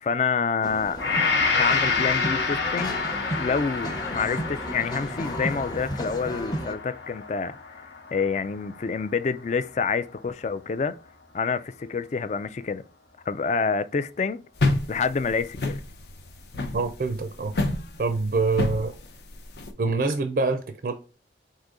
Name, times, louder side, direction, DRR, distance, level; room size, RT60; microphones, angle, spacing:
voice 1, 0.0-1.2 1.5-3.0 3.4-11.0 11.3-12.8 13.3-14.4 14.9-15.8, left 5 dB, 40° left, 0.3 m, -27 dB
sound 1, 0.6-6.7, equal, 25° left, 0.7 m, -34 dB
Gong, 1.0-9.3 9.7-9.9, left 4 dB, 85° left, 1.1 m, -29 dB
sound 2, 14.6-19.7, left 2 dB, 65° left, 0.8 m, -28 dB
voice 2, 16.7-17.5 18.0-19.0 19.8-20.9, right 3 dB, 50° right, 0.4 m, -25 dB
4.9 x 2.7 x 3.7 m
head